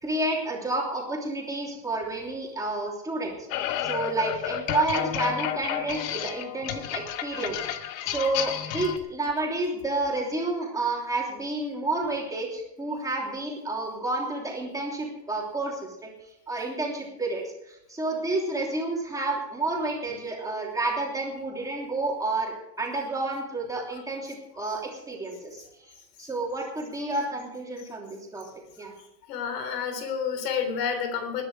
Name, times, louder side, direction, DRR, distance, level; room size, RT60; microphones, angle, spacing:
voice 1, 0.0-3.4 3.8-16.1 16.5-24.8 25.1-25.6 26.2-28.4 28.8-28.9, right 2 dB, 5° right, -2 dB, 3.0 m, -30 dB
sound 1, 3.5-9.0, left 11 dB, 55° left, 1.2 m, -31 dB
voice 2, 29.3-31.4, left 7 dB, 70° left, 8 dB, 3.8 m, -29 dB
19.5 x 10.5 x 4.9 m, 0.82 s
supercardioid pair, 165°, 49 cm